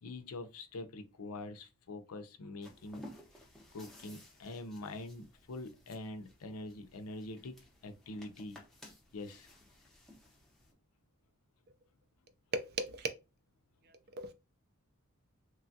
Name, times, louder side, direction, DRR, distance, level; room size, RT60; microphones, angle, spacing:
voice 1, 0.0-3.0 3.3-3.4 3.7-8.6 9.1-9.5, left 2 dB, 80° left, 0.5 m, -45 dB
sound 1, 2.6-10.7, left 1 dB, ahead, 0.6 m, -57 dB
voice 2, 12.5-13.1 14.1-14.3, right 2 dB, 45° right, 0.4 m, -36 dB
3.1 x 2.3 x 2.6 m
head